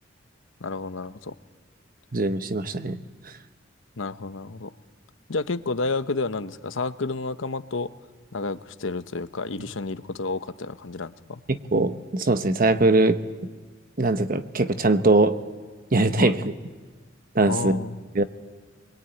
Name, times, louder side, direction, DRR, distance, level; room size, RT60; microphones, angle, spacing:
voice 1, 0.6-1.3 4.0-4.7 5.3-7.9 8.3-11.4 16.2-16.4 17.5-18.0, left 3 dB, 75° left, 11 dB, 0.9 m, -30 dB
voice 2, 2.1-3.0 11.5-13.2 14.0-15.4 15.9-16.5 17.3-17.8 18.1-18.2, right 2 dB, 45° right, 10 dB, 1.0 m, -21 dB
24.5 x 22.5 x 9.1 m, 1.4 s
head